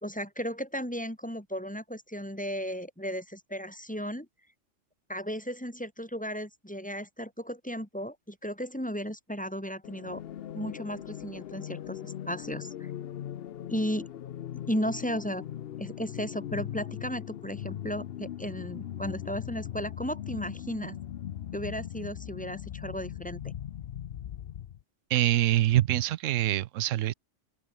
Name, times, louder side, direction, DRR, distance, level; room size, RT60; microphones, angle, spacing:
voice 1, 0.0-4.3 5.1-10.2 10.5-12.9 13.7-14.1 14.7-15.4 15.8-21.0 21.5-23.4, equal, 5° left, 3.5 m, -35 dB
sound 1, 9.8-24.8, left 10 dB, 60° left, 0.8 m, -40 dB
voice 2, 25.1-27.1, right 14 dB, 85° right, 1.0 m, -25 dB
open air
omnidirectional pair, 1.3 m